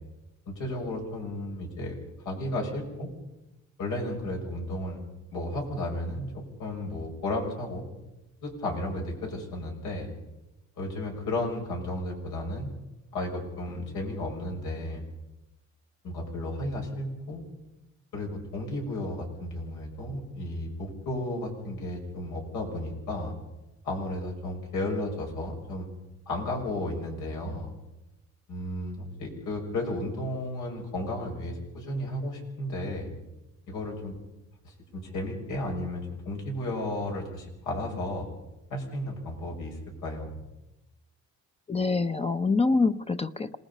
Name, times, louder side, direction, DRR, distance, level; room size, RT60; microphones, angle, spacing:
voice 1, 0.5-2.0 2.2-3.1 3.8-5.0 5.3-7.8 8.4-10.1 10.8-12.7 13.1-15.0 16.0-17.4 18.1-23.3 23.8-25.9 26.3-27.7 28.5-33.1 33.7-34.1 34.6-38.3 38.7-40.4, left 1 dB, 85° left, 0 dB, 6.7 m, -33 dB
voice 2, 41.7-43.6, left 3 dB, 20° left, 9 dB, 0.8 m, -25 dB
27.0 x 19.0 x 5.5 m, 0.98 s
cardioid pair, 90°, 30 cm